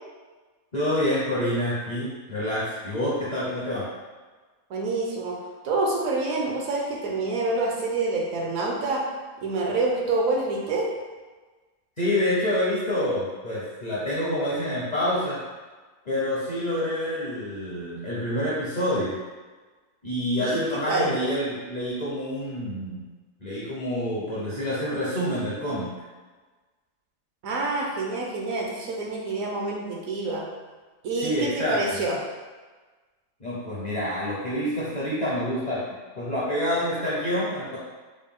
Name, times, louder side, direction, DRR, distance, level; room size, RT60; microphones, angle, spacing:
voice 1, 0.7-3.9 12.0-15.4 16.1-19.2 20.0-23.1 23.4-25.9 31.2-32.0 33.4-35.9 36.2-37.8, left 1 dB, 40° left, -9 dB, 0.6 m, -27 dB
voice 2, 4.7-5.4 5.6-9.0 9.4-10.9 20.4-21.1 27.4-30.5 31.0-32.2, right 3 dB, 70° right, -2 dB, 1.0 m, -27 dB
3.9 x 2.2 x 3.6 m, 1.3 s
omnidirectional pair, 1.6 m